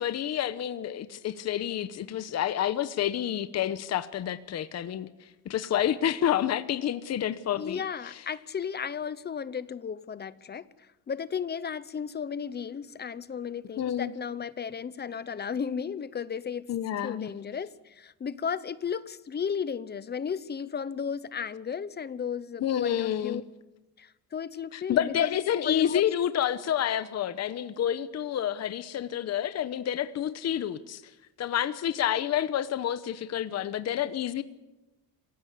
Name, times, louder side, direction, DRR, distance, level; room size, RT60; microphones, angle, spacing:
voice 1, 0.0-5.1 5.5-7.8 13.8-14.1 16.7-17.3 22.6-23.4 24.7-31.0 31.4-34.4, left 10 dB, 45° left, 13 dB, 0.9 m, -29 dB
voice 2, 7.6-10.7 11.1-16.7 17.0-23.4 24.0-25.3 25.6-26.0, left 7 dB, 30° left, 18 dB, 0.7 m, -34 dB
27.0 x 16.0 x 8.3 m, 1.0 s
cardioid pair, 150°, 36 cm